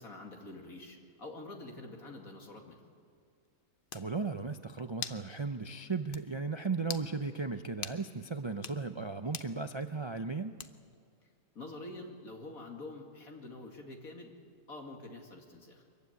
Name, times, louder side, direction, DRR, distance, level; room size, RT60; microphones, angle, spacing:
voice 1, 0.0-2.8 11.5-14.3 14.7-15.9, left 2 dB, 75° left, 2 dB, 2.8 m, -46 dB
sound 1, 3.5-3.6 3.9-4.1 5.0-5.3 5.6-5.7 6.1-6.3 6.8-7.1 7.8-8.0 8.5-8.8 9.3-9.5 10.6-10.9, left 6 dB, 45° left, 0.8 m, -41 dB
voice 2, 3.9-10.5, right 4 dB, 45° right, 7 dB, 0.3 m, -36 dB
24.0 x 15.0 x 9.5 m, 2.1 s
omnidirectional pair, 1.5 m